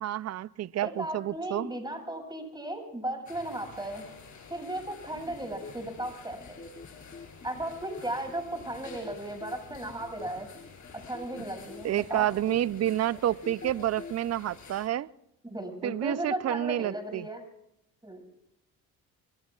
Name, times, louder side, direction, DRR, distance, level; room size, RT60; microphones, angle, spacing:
voice 1, 0.0-1.7 11.8-15.1 15.8-17.3, right 12 dB, 40° right, 0.6 m, -29 dB
voice 2, 0.8-4.0 4.5-6.6 7.4-10.5 11.1-12.3 15.4-17.4 18.0-18.2, right 1 dB, 10° right, 6.5 m, -36 dB
sound 1, 3.3-14.9, left 5 dB, 50° left, 6.4 m, -51 dB
sound 2, 5.1-14.1, left 4 dB, 30° left, 2.7 m, -46 dB
24.5 x 24.0 x 2.4 m
supercardioid pair, 70°, 39 cm